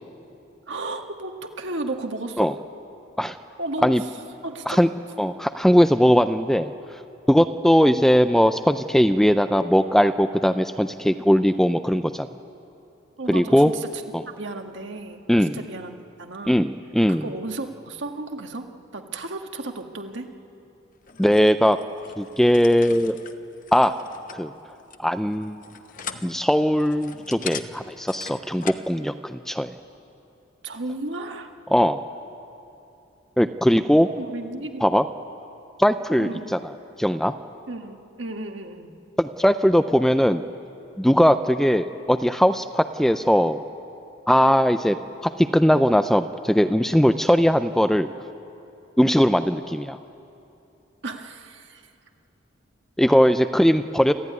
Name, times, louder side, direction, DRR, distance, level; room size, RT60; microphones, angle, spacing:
voice 1, 0.7-2.5 3.6-4.1 4.4-4.9 13.2-16.6 17.1-20.3 30.6-31.5 34.2-34.8 36.2-36.6 37.7-38.9 51.0-51.9, right 2 dB, 70° right, 4 dB, 1.7 m, -34 dB
voice 2, 5.2-6.7 7.3-12.3 13.3-13.7 15.3-15.6 16.5-17.2 21.2-21.8 22.2-23.2 23.7-23.9 24.3-24.5 25.0-25.6 26.2-29.7 31.7-32.0 33.4-34.1 34.8-35.0 35.8-36.6 37.0-37.3 39.2-40.4 41.0-43.7 44.3-45.0 45.2-48.1 49.0-50.0 53.0-54.1, equal, ahead, 10 dB, 0.4 m, -19 dB
sound 1, 21.0-28.9, left 7 dB, 45° left, 0.9 m, -41 dB
27.0 x 14.5 x 9.5 m, 2.8 s
head